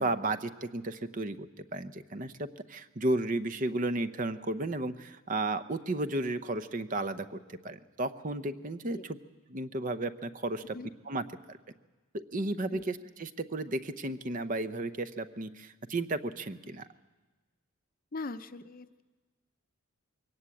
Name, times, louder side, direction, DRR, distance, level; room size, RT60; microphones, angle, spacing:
voice 1, 0.0-9.2 9.5-10.8 11.1-11.6 12.1-16.9, right 2 dB, 40° right, 11 dB, 0.7 m, -33 dB
voice 2, 18.1-19.0, left 3 dB, 45° left, 11 dB, 0.7 m, -40 dB
22.5 x 17.5 x 8.4 m, 1.2 s
head